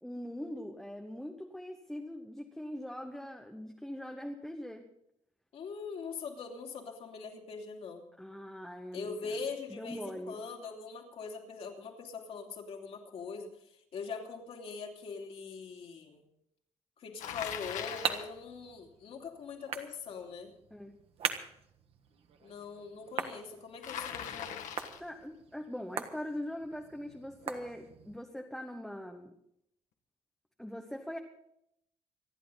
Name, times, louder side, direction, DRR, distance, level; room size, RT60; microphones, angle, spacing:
voice 1, 0.0-4.9 8.2-9.4 9.7-10.4 20.7-20.9 25.0-29.3 30.6-31.2, left 1 dB, ahead, 3 dB, 1.0 m, -42 dB
voice 2, 5.5-8.0 8.9-13.5 13.9-16.3 17.0-20.5 22.4-24.6, left 5 dB, 50° left, 2 dB, 2.9 m, -42 dB
Bicycle, 17.2-18.3 23.8-25.1, left 9 dB, 85° left, 1.8 m, -40 dB
sound 1, 17.3-28.2, right 7 dB, 50° right, 1.5 m, -42 dB
26.5 x 11.0 x 4.0 m, 0.76 s
cardioid pair, 180°, 13 cm